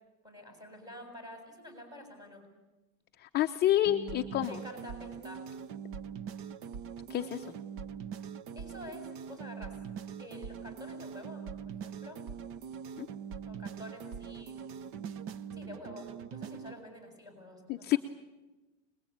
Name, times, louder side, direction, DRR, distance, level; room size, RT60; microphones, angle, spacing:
voice 1, 0.2-2.5 4.4-5.4 8.5-9.8 10.2-12.2 13.5-14.7 15.5-18.0, left 1 dB, 10° right, 2 dB, 7.6 m, -48 dB
voice 2, 3.2-4.5 7.1-7.5 13.0-13.1 17.7-18.0, left 13 dB, 25° left, 5 dB, 0.8 m, -28 dB
sound 1, 3.8-16.8, right 7 dB, 35° right, 0.8 m, -42 dB
26.5 x 21.0 x 8.8 m, 1.1 s
supercardioid pair, 140°, 40 cm